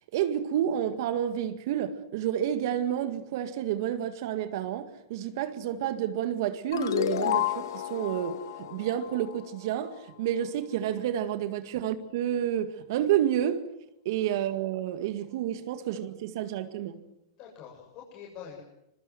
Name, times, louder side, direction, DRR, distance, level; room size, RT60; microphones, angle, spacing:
voice 1, 0.1-13.6 14.1-17.0, right 10 dB, 60° right, 1.9 m, -30 dB
sound 1, 6.7-9.9, left 11 dB, 70° left, 2.4 m, -31 dB
voice 2, 16.3-16.7 17.4-18.6, left 8 dB, 45° left, 7.6 m, -47 dB
26.5 x 23.0 x 7.8 m
hypercardioid pair, 105°, 2 cm